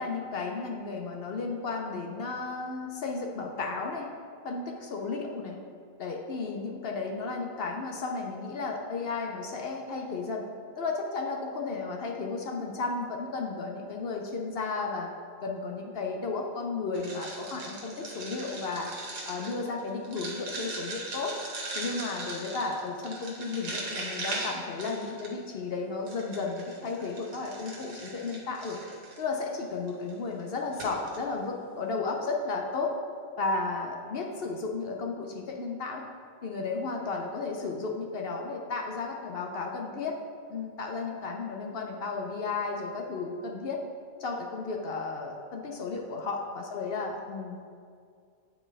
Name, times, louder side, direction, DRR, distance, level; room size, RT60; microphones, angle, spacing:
voice 1, 0.0-4.1 4.4-5.6 6.0-10.5 10.8-15.1 15.4-18.9 19.3-21.4 21.7-28.8 29.2-33.0 33.4-36.0 36.4-40.2 40.5-43.8 44.2-47.6, left 4 dB, 60° left, 2 dB, 0.6 m, -33 dB
sound 1, 16.9-25.5 26.1-29.2 29.9-30.1 30.4-30.5 30.7-31.2, right 2 dB, 85° right, 1.6 m, -39 dB
8.4 x 4.6 x 3.3 m, 2.2 s
omnidirectional pair, 1.5 m